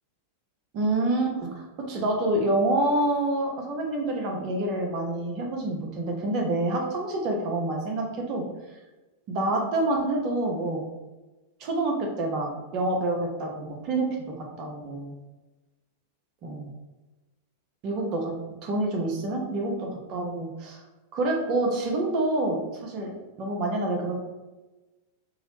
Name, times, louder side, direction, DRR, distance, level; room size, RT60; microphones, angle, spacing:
voice 1, 0.7-8.4 9.3-10.9 11.6-15.2 16.4-16.7 17.8-18.3 18.6-20.8 21.1-23.1 23.4-24.2, right 2 dB, 40° right, 1 dB, 0.6 m, -27 dB
2.8 x 2.0 x 3.0 m, 1.1 s
figure-of-eight pair, 90°, 0 cm